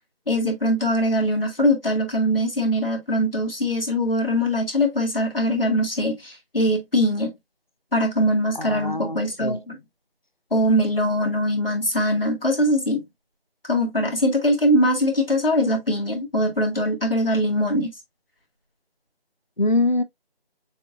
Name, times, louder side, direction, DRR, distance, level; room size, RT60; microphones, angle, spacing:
voice 1, 0.3-7.3 7.9-9.8 10.5-13.0 13.6-17.9, equal, 65° left, 2.0 m, -22 dB
voice 2, 8.5-9.6 19.6-20.0, left 2 dB, 50° left, 0.6 m, -23 dB
6.8 x 2.7 x 2.4 m
figure-of-eight pair, 180°, 31 cm